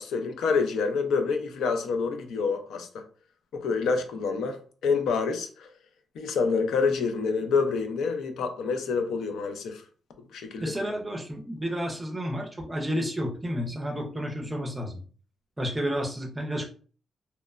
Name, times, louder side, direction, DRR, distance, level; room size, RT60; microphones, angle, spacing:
voice 1, 0.0-3.0 3.5-4.6 4.8-5.7 6.2-9.8 10.3-10.7, left 5 dB, 85° left, 0.4 m, -27 dB
voice 2, 10.6-15.0 15.6-16.7, equal, 10° right, 0.5 m, -31 dB
2.9 x 2.1 x 2.3 m
wide cardioid pair, 180°, 0 cm